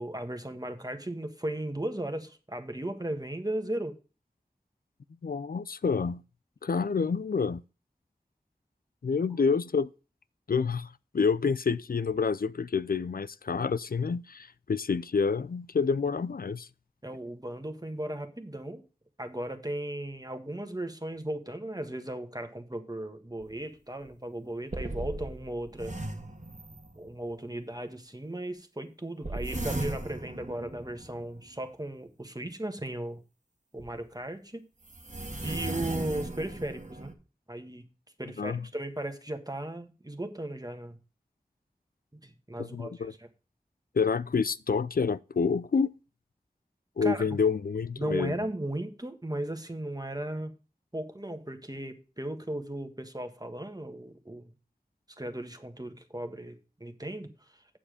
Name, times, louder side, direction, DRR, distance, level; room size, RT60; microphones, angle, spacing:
voice 1, 0.0-4.0 17.0-18.8 19.2-26.0 26.9-33.2 33.7-34.7 35.4-37.1 37.5-37.8 38.2-41.0 42.1-43.3 47.0-47.3 48.0-50.5 50.9-54.5 55.2-57.8, right 1 dB, 25° right, 1.5 m, -36 dB
voice 2, 5.2-6.2 6.6-7.6 9.0-9.9 10.5-16.7 38.4-38.6 42.6-43.1 43.9-45.9 47.0-48.4, left 5 dB, 65° left, 0.4 m, -28 dB
sound 1, 23.4-23.5 24.1-24.2 24.7-27.2 29.2-31.6 33.8-33.9 34.9-37.1, right 2 dB, 50° right, 1.6 m, -37 dB
8.8 x 7.3 x 5.0 m
wide cardioid pair, 40°, 16 cm